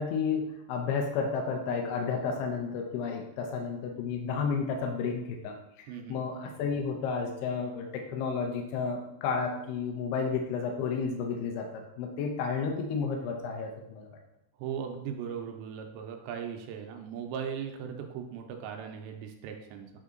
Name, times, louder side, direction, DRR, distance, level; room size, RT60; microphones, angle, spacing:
voice 1, 0.0-5.6 6.1-14.1, left 5 dB, 75° left, 2 dB, 2.6 m, -32 dB
voice 2, 5.9-6.2 14.6-19.9, right 7 dB, 85° right, 4 dB, 2.9 m, -38 dB
8.6 x 3.6 x 3.9 m, 0.82 s
omnidirectional pair, 5.0 m